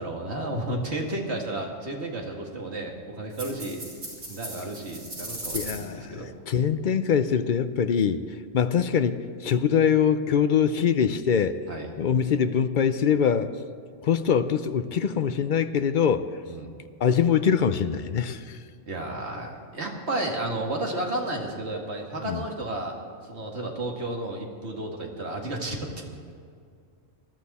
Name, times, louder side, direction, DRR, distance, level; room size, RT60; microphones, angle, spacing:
voice 1, 0.0-3.8 4.3-6.3 11.7-11.9 16.5-16.7 18.9-23.0 23.2-26.3, right 1 dB, 55° right, 0 dB, 2.3 m, -32 dB
sound 1, 3.3-5.8, right 1 dB, 85° right, 5.1 m, -38 dB
voice 2, 5.5-8.2 8.5-11.6 12.0-13.5 14.0-16.2 17.0-18.4 22.2-22.4, left 7 dB, 55° left, 11 dB, 0.6 m, -23 dB
20.5 x 12.5 x 4.2 m, 2.3 s
omnidirectional pair, 1.3 m